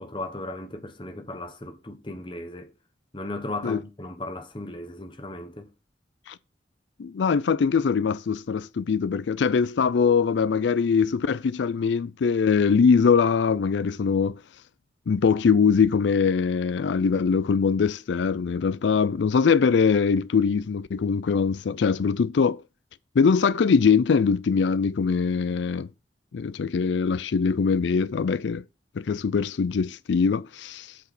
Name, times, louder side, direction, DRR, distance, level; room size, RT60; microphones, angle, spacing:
voice 1, 0.0-2.7 3.1-5.7, left 2 dB, 30° left, 1.1 m, -36 dB
voice 2, 7.0-14.4 15.1-22.6 23.2-25.9 26.3-28.6 29.0-31.0, left 5 dB, 90° left, 0.4 m, -22 dB
8.3 x 4.7 x 6.0 m
head